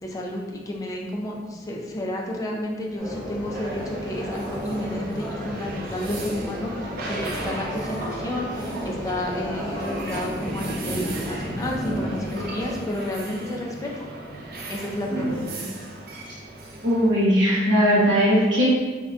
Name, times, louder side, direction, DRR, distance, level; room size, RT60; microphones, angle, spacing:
voice 1, 0.0-13.9 14.7-15.6, left 1 dB, 20° left, -2 dB, 0.3 m, -31 dB
sound 1, 3.0-12.8, equal, 20° right, 1.2 m, -34 dB
sound 2, 3.5-17.1, right 1 dB, 50° right, 0.4 m, -35 dB
voice 2, 16.8-18.6, equal, 70° right, -7 dB, 0.8 m, -19 dB
3.5 x 2.2 x 2.3 m, 1.5 s
head